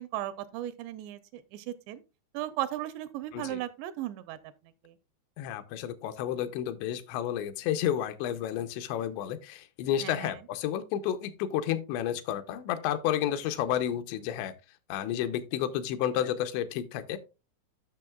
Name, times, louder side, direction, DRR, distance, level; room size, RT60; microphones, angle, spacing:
voice 1, 0.0-2.0 2.3-4.4 4.8-4.9 10.0-10.4, right 13 dB, 85° right, 2.7 m, -36 dB
voice 2, 5.4-14.5 14.9-17.2, left 10 dB, 85° left, 2.9 m, -31 dB
12.0 x 6.3 x 2.3 m
omnidirectional pair, 5.1 m